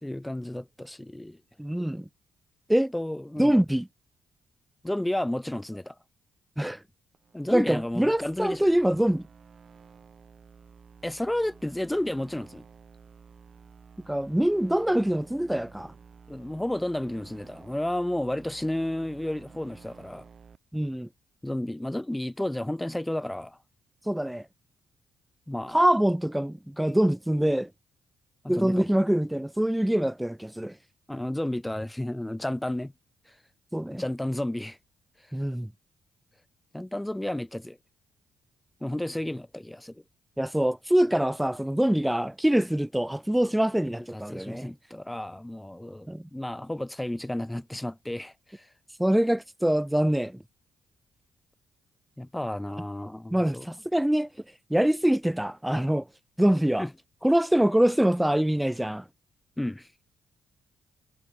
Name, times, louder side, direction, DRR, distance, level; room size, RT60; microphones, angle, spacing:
voice 1, 0.0-1.4 2.9-3.5 4.8-5.9 7.3-8.6 11.0-12.6 16.3-20.3 21.4-23.6 25.5-25.8 28.4-28.9 31.1-32.9 33.9-34.8 36.7-37.8 38.8-40.0 43.8-48.7 52.2-53.7 56.8-56.9 59.6-59.9, left 1 dB, 10° left, 0.5 m, -32 dB
voice 2, 1.6-2.1 2.7-2.9 3.4-3.9 6.6-6.8 7.5-9.3 14.1-15.9 20.7-21.1 24.1-24.4 25.7-27.7 28.5-30.7 33.7-34.0 35.3-35.7 40.4-44.7 46.1-46.3 49.0-50.4 53.3-54.3 54.7-56.1 56.4-56.8 57.2-59.0, right 1 dB, 5° right, 1.0 m, -24 dB
sound 1, 7.1-20.6, right 6 dB, 50° right, 5.2 m, -52 dB
hypercardioid pair, 45°, 0 cm